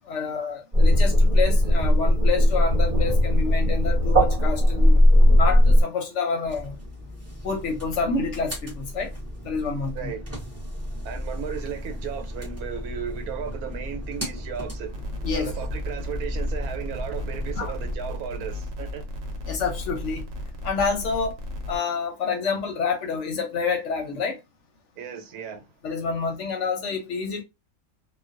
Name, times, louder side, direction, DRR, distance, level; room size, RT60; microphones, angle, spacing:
voice 1, 0.1-5.0 5.3-6.8 7.4-9.1 9.4-10.1 15.2-15.5 17.6-17.7 19.5-20.3 20.6-21.4 21.7-24.4 25.8-27.4, left 5 dB, 65° left, 0.8 m, -28 dB
sound 1, 0.7-5.8, equal, 40° right, 0.9 m, -17 dB
sound 2, 6.4-18.0, equal, 20° right, 0.4 m, -35 dB
voice 2, 9.9-10.3 11.0-15.1 15.3-19.1 25.0-25.7, right 8 dB, 85° right, 1.1 m, -35 dB
sound 3, 14.9-21.8, left 1 dB, 65° right, 0.9 m, -35 dB
2.4 x 2.2 x 2.4 m
omnidirectional pair, 1.5 m